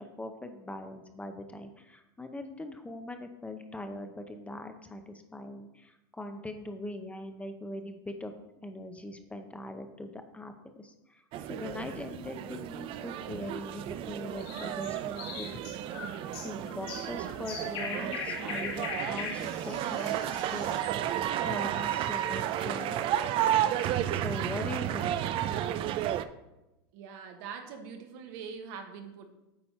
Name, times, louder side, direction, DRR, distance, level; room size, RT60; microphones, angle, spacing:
voice 1, 0.0-8.3 8.6-11.2 11.5-15.5 16.4-20.2 20.5-20.7 21.4-23.0 24.1-25.1, left 1 dB, 10° left, 7 dB, 0.6 m, -41 dB
sound 1, 11.3-26.2, right 11 dB, 45° right, 0.4 m, -32 dB
sound 2, 14.4-21.0, left 4 dB, 70° left, 2.3 m, -40 dB
voice 2, 26.9-29.3, right 6 dB, 65° right, 5 dB, 1.2 m, -43 dB
8.7 x 4.4 x 4.3 m, 0.96 s
supercardioid pair, 115°, 13 cm